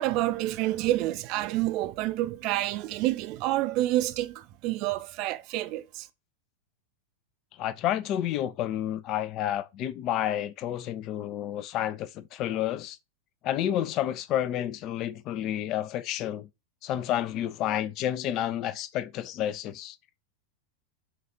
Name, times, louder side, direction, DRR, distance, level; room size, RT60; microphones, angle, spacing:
voice 1, 0.0-6.1, right 16 dB, 40° right, 0.4 m, -28 dB
voice 2, 7.6-13.0 13.4-16.5 16.8-20.0, left 11 dB, 35° left, 0.3 m, -30 dB
5.8 x 2.4 x 2.7 m
figure-of-eight pair, 90°, 0 cm